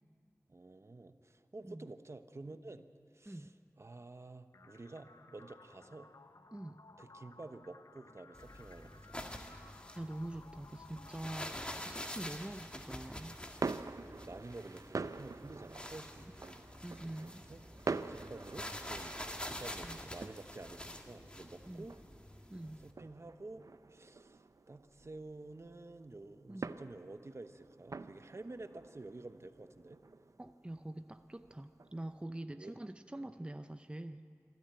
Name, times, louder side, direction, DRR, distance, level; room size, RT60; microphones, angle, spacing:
voice 1, 0.5-2.9 3.1-3.5 3.8-6.1 7.0-9.2 14.1-16.6 17.5-17.6 18.1-19.2 19.5-22.0 22.8-23.6 23.9-30.0 32.5-32.8, right 2 dB, 55° right, 9 dB, 1.0 m, -50 dB
sound 1, 4.5-12.5, left 3 dB, 90° left, 0.8 m, -59 dB
sound 2, 8.3-22.9, left 1 dB, 20° left, 1.8 m, -47 dB
voice 2, 9.4-11.5 11.8-13.4 16.8-17.5 19.8-20.0 21.7-21.9 22.5-22.8 26.5-26.7 30.4-34.3, right 1 dB, 20° right, 9 dB, 0.6 m, -45 dB
sound 3, 13.2-32.2, right 4 dB, 80° right, 0.6 m, -46 dB
25.5 x 13.5 x 8.9 m, 2.3 s
wide cardioid pair, 55°, 6 cm